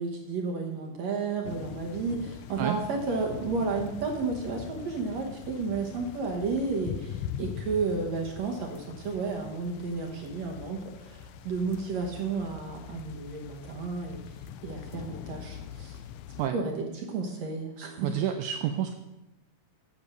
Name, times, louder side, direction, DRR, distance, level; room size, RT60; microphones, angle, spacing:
voice 1, 0.0-14.2 14.6-16.0 16.5-18.1, right 4 dB, 60° right, 1 dB, 2.0 m, -32 dB
sound 1, 1.4-16.5, left 8 dB, 85° left, 1.7 m, -42 dB
voice 2, 18.0-18.9, right 10 dB, 85° right, 7 dB, 1.7 m, -29 dB
9.9 x 7.1 x 6.5 m, 0.96 s
omnidirectional pair, 4.1 m